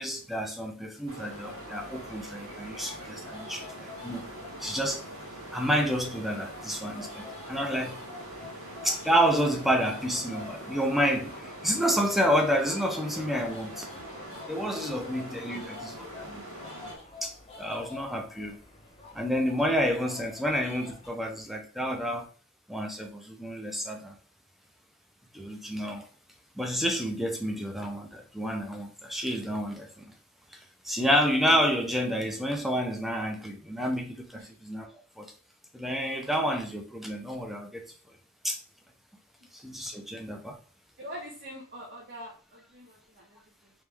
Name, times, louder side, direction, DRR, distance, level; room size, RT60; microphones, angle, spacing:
voice 1, 0.0-4.3 4.6-5.0 5.5-8.0 8.8-13.9 14.5-16.4 17.2-18.6 19.1-22.3 22.7-24.1 25.3-26.1 26.6-30.1 30.5-30.6 30.8-34.9 35.2-35.3 35.7-37.9 38.4-38.6 39.5-40.6, equal, ahead, 0.6 m, -29 dB
sound 1, 1.1-17.0, right 1 dB, 70° right, 1.3 m, -43 dB
sound 2, 1.2-21.1, left 3 dB, 25° left, 1.0 m, -48 dB
voice 2, 41.0-43.7, equal, 45° right, 1.0 m, -44 dB
3.4 x 3.2 x 3.4 m
head